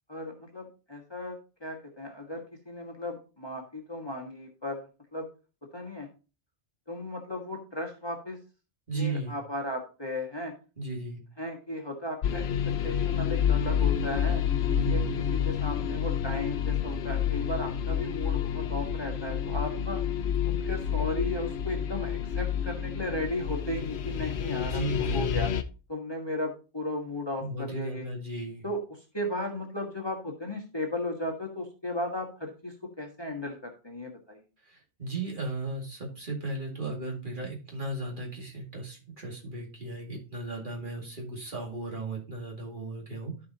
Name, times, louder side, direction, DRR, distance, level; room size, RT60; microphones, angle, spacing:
voice 1, 0.1-4.9 5.1-5.3 5.7-6.1 6.9-8.4 8.9-10.5 11.4-14.4 14.9-15.0 15.4-20.0 20.4-25.5 25.9-28.1 28.6-34.4, left 1 dB, 25° left, 1 dB, 1.4 m, -35 dB
voice 2, 8.9-9.4 10.8-11.2 14.7-15.1 24.6-25.4 27.4-28.6 34.6-43.5, right 2 dB, 45° right, -2 dB, 2.4 m, -35 dB
sound 1, 12.2-25.6, left 8 dB, 70° left, 0.9 m, -29 dB
13.0 x 5.0 x 2.8 m, 0.32 s
omnidirectional pair, 1.2 m